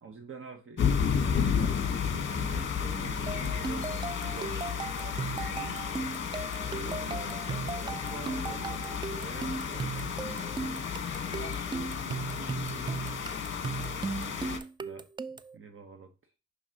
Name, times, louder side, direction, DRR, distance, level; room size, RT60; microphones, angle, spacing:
voice 1, 0.0-5.9 6.8-10.5 14.8-15.1 15.5-16.3, right 5 dB, 45° right, 1.1 m, -46 dB
sound 1, 0.8-14.6, left 7 dB, 40° left, 1.2 m, -32 dB
sound 2, 3.3-15.6, right 5 dB, 15° right, 0.3 m, -37 dB
voice 2, 6.5-7.0 11.3-13.0, equal, 75° right, 2.6 m, -46 dB
6.0 x 5.7 x 2.9 m
cardioid pair, 90°, 30 cm